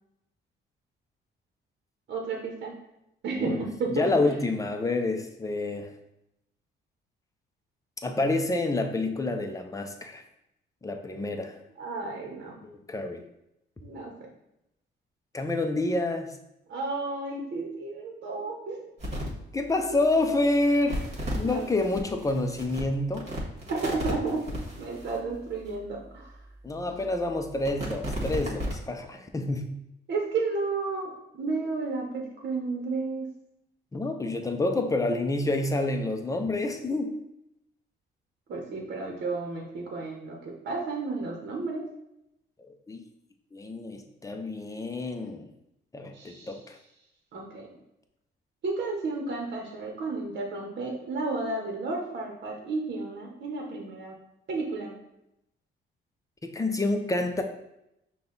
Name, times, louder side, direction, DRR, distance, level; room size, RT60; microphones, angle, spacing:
voice 1, 2.1-2.7 3.2-4.4 11.8-12.5 13.8-14.1 16.7-18.9 21.4-21.7 23.7-24.4 24.8-26.4 30.1-33.3 38.5-41.8 46.1-46.6 47.3-47.7 48.6-54.1 54.5-54.9, right 3 dB, 60° right, 0 dB, 0.9 m, -32 dB
voice 2, 3.9-5.9 8.0-10.2 10.8-11.6 12.6-13.2 15.3-16.4 19.5-21.0 21.3-23.3 26.6-29.7 33.9-37.1 42.9-43.0 43.5-45.4 45.9-46.8 56.4-57.4, left 2 dB, 15° left, 5 dB, 0.6 m, -28 dB
sound 1, 19.0-19.3 19.9-20.0 20.6-25.7 26.3-26.4 27.0-28.8, equal, 35° right, 1.5 m, -35 dB
5.3 x 2.3 x 3.9 m, 0.84 s
cardioid pair, 90°, 20 cm